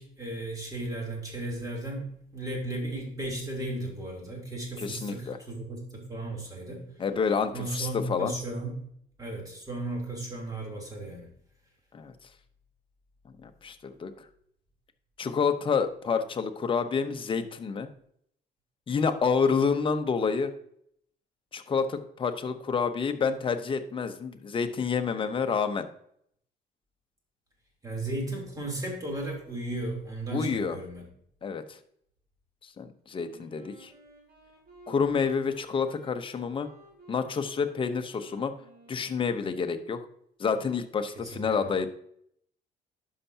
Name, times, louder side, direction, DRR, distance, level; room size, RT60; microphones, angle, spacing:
voice 1, 0.0-2.1 2.3-6.8 7.5-8.7 9.2-11.3 25.1-25.3 27.8-31.1 41.1-41.5, right 2 dB, 20° right, -1 dB, 3.1 m, -35 dB
voice 2, 4.8-5.4 7.0-8.3 11.9-12.1 13.4-14.3 15.2-17.9 18.9-20.5 21.5-25.9 30.3-30.8 31.4-31.8 32.8-33.9 34.9-36.7 37.1-38.5 38.9-40.0 40.4-41.9, left 5 dB, 30° left, 7 dB, 0.8 m, -28 dB
Wind instrument woodwind instrument, 33.1-39.8, right 1 dB, 65° right, 3.2 m, -55 dB
11.0 x 5.7 x 2.8 m, 0.69 s
cardioid pair, 110°, 17 cm